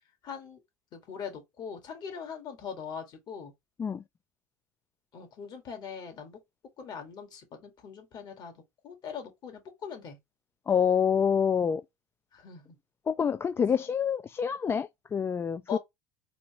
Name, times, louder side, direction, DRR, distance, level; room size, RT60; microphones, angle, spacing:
voice 1, 0.2-0.6 0.9-3.5 5.1-6.4 6.8-8.5 8.8-10.2 12.3-12.8 15.7-15.8, left 7 dB, 45° left, 2.0 m, -41 dB
voice 2, 10.7-11.8 13.1-15.8, left 7 dB, 25° left, 0.3 m, -27 dB
4.2 x 2.8 x 3.1 m
hypercardioid pair, 80°, 10 cm